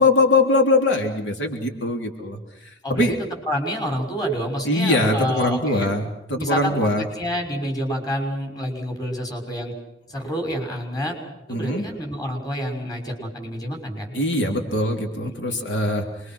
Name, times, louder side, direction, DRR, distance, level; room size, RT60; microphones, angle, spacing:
voice 1, 0.0-2.4 2.9-3.1 4.6-6.0 6.3-7.0 11.5-11.9 14.1-16.0, left 2 dB, 80° left, 2 dB, 3.3 m, -21 dB
voice 2, 2.8-3.2 3.5-5.9 6.3-9.7 10.1-11.2 11.5-14.1 15.2-15.6, equal, 20° left, 2 dB, 6.0 m, -28 dB
27.0 x 23.0 x 6.3 m, 0.89 s
head